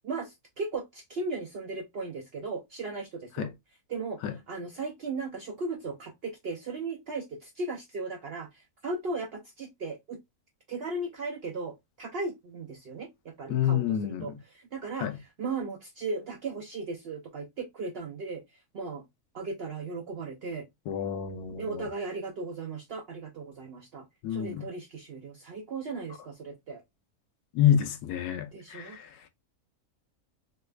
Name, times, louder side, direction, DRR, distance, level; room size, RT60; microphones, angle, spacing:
voice 1, 0.0-3.5 3.9-4.2 4.5-10.2 10.7-14.3 14.6-15.1 15.4-19.0 19.3-20.7 21.6-26.8 28.5-29.0, right 3 dB, 65° right, 0.6 m, -36 dB
voice 2, 13.5-14.4 15.0-15.2 20.9-21.9 24.2-24.6 27.5-29.3, left 10 dB, 90° left, 1.2 m, -28 dB
3.3 x 2.2 x 3.1 m
omnidirectional pair, 1.6 m